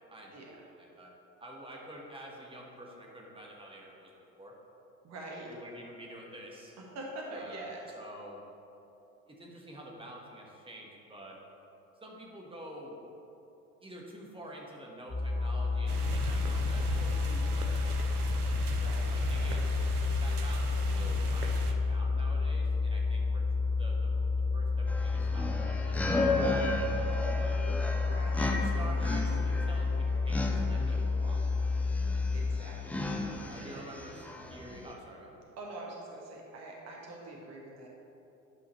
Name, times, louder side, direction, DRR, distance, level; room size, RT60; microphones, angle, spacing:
voice 1, 0.1-0.5 0.8-1.1 1.4-4.5 5.5-6.7 7.3-7.7 7.9-8.4 9.3-11.4 12.0-13.0 13.8-18.3 19.1-19.8 20.2-23.4 23.8-24.1 24.5-27.1 27.4-27.6 28.4-31.4 33.5-34.2 34.5-35.4, right 1 dB, 10° right, -2 dB, 1.5 m, -48 dB
voice 2, 5.0-5.5 6.8-7.9 18.7-19.5 27.9-28.6 32.3-33.0 33.6-33.8 35.6-37.9, right 2 dB, 35° right, -2 dB, 1.5 m, -44 dB
sound 1, 15.1-32.6, left 4 dB, 60° left, 1.8 m, -30 dB
sound 2, 15.9-21.7, right 4 dB, 90° right, 0.7 m, -39 dB
sound 3, 24.9-34.9, left 2 dB, 5° left, 0.3 m, -35 dB
11.0 x 5.6 x 3.1 m, 2.9 s
figure-of-eight pair, 70°, 44 cm